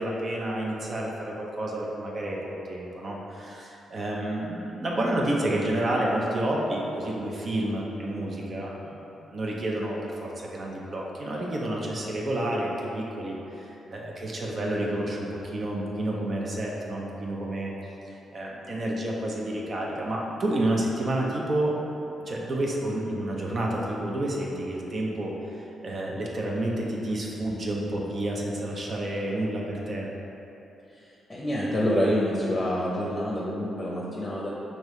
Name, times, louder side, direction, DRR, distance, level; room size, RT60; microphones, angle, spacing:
voice 1, 0.0-2.4 2.7-17.7 18.3-21.7 22.2-30.1, right 1 dB, 50° right, -3 dB, 0.6 m, -30 dB
voice 2, 31.3-34.5, equal, 30° left, -5 dB, 0.6 m, -27 dB
4.7 x 2.7 x 3.1 m, 3.0 s
supercardioid pair, 60°, 0 cm